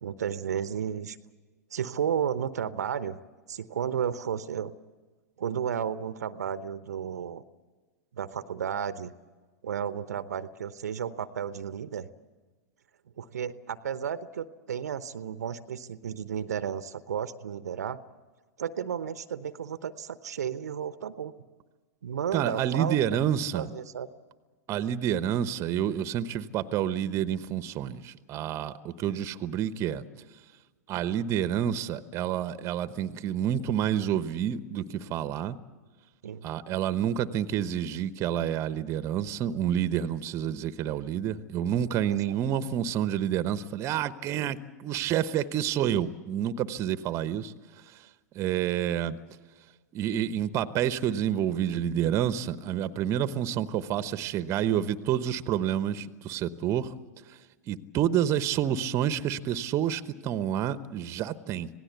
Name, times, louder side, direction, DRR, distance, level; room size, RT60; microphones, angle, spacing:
voice 1, 0.0-1.2 1.7-3.2 3.5-4.7 5.4-7.4 8.1-9.1 9.6-12.1 13.2-18.0 18.6-21.3 22.0-22.9 23.5-24.1 36.2-36.5 42.1-42.4, right 8 dB, 70° right, 14 dB, 0.9 m, -33 dB
voice 2, 22.3-23.7 24.7-30.0 30.9-35.6 36.4-47.5 47.9-48.0 48.3-49.2 49.9-56.9 57.3-57.4 57.7-61.7, right 10 dB, 30° right, 14 dB, 1.0 m, -29 dB
26.5 x 18.0 x 8.2 m, 1.4 s
figure-of-eight pair, 100°, 9 cm